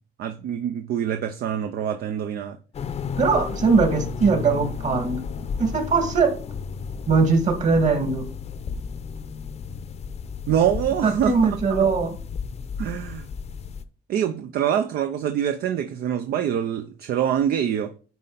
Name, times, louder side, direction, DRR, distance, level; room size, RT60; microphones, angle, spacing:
voice 1, 0.2-2.6 10.5-11.9 12.8-13.3 14.1-17.9, right 9 dB, 65° right, 0.6 m, -25 dB
sound 1, 2.7-13.8, left 5 dB, 40° left, 0.7 m, -33 dB
voice 2, 3.2-5.2 5.6-6.4 7.1-8.3 11.0-12.2, right 4 dB, 45° right, 2.1 m, -20 dB
9.5 x 4.3 x 4.0 m
cardioid pair, 110°, 17 cm